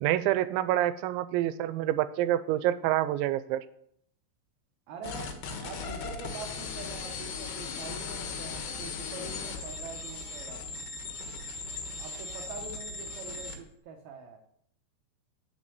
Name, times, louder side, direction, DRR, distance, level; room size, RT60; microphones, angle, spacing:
voice 1, 0.0-3.6, right 13 dB, 90° right, 13 dB, 2.9 m, -27 dB
voice 2, 4.9-5.3 5.6-10.7 12.0-14.4, right 4 dB, 70° right, 1 dB, 2.4 m, -44 dB
sound 1, 5.0-13.6, left 4 dB, 65° left, 3.0 m, -38 dB
8.5 x 6.6 x 7.7 m, 0.71 s
omnidirectional pair, 5.2 m